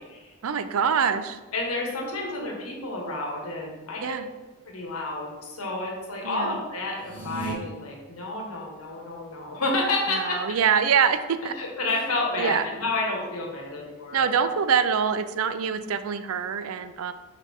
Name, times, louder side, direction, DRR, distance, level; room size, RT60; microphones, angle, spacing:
voice 1, 0.4-1.4 4.0-4.3 6.2-6.6 10.1-11.5 12.4-12.7 14.1-17.1, right 7 dB, 75° right, 11 dB, 0.4 m, -24 dB
voice 2, 1.5-4.2 4.7-10.4 11.6-14.3, left 2 dB, 80° left, -1 dB, 1.5 m, -30 dB
sound 1, 6.9-7.5, right 4 dB, 35° right, 2.0 m, -35 dB
6.4 x 5.2 x 3.6 m, 1.2 s
head